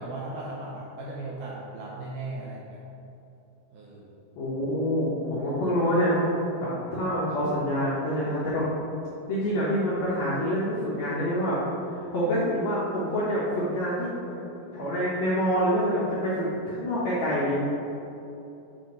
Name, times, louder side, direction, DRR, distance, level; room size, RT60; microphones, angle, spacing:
voice 1, 0.0-2.8 3.7-4.1, right 2 dB, 80° right, -4 dB, 1.9 m, -37 dB
voice 2, 4.3-6.3 6.6-8.7 9.3-11.6 11.9-14.4 14.7-17.5, equal, 75° left, -9 dB, 1.6 m, -26 dB
7.6 x 3.4 x 4.4 m, 2.8 s
omnidirectional pair, 4.4 m